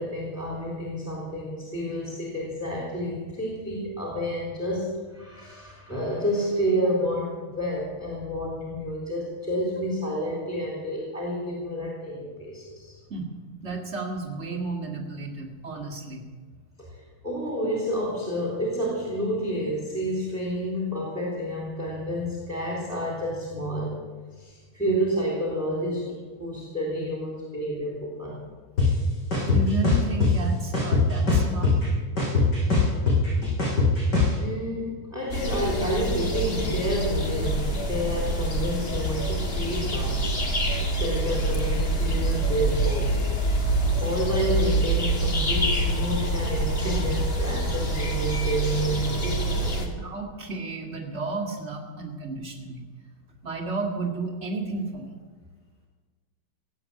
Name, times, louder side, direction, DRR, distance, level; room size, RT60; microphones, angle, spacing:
voice 1, 0.0-13.0 16.8-24.0 24.3-28.4 34.4-40.3 40.9-43.2 43.6-43.7 44.0-50.0, equal, ahead, -4 dB, 3.5 m, -29 dB
voice 2, 13.6-16.3 29.5-31.7 34.4-34.5 50.0-52.9 53.4-55.1, right 3 dB, 30° right, 1 dB, 2.3 m, -32 dB
sound 1, 28.8-28.9 29.3-30.3 30.7-31.9 32.2-34.3, left 3 dB, 55° left, 6.6 m, -21 dB
sound 2, 35.3-49.9, right 1 dB, 30° left, 1.7 m, -26 dB
17.0 x 8.7 x 8.4 m, 1.4 s
omnidirectional pair, 2.3 m